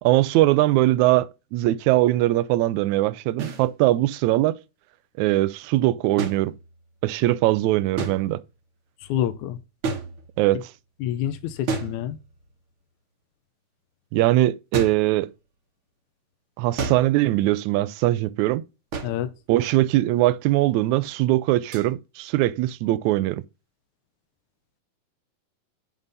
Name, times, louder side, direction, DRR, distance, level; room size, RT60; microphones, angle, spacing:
voice 1, 0.0-4.6 5.2-6.5 7.0-8.4 10.4-10.7 14.1-15.3 16.6-18.6 19.5-23.4, right 16 dB, 80° right, 1.9 m, -21 dB
sound 1, 3.4-3.7 6.2-7.0 8.0-8.6 9.8-10.6 11.7-12.5 14.7-15.1 16.8-17.3 18.9-19.3 21.7-21.9, right 4 dB, 50° right, 1.8 m, -32 dB
voice 2, 9.0-9.6 11.0-12.2 19.0-19.3, left 11 dB, 80° left, 2.1 m, -27 dB
10.5 x 3.8 x 4.0 m
omnidirectional pair, 3.5 m